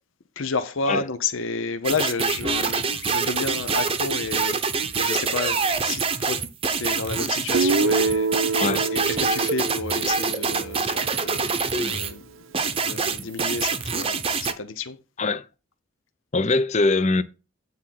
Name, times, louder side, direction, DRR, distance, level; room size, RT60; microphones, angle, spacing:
voice 1, 0.4-4.6 4.9-6.4 6.8-8.6 8.9-15.0, left 4 dB, 80° left, 0.8 m, -31 dB
sound 1, 1.8-12.1 12.5-14.5, right 4 dB, 25° right, 0.8 m, -25 dB
Guitar, 7.5-11.5, right 4 dB, 85° right, 0.7 m, -26 dB
voice 2, 8.6-8.9 15.2-15.5 16.3-17.2, left 3 dB, 35° left, 0.6 m, -22 dB
9.6 x 3.7 x 5.9 m
head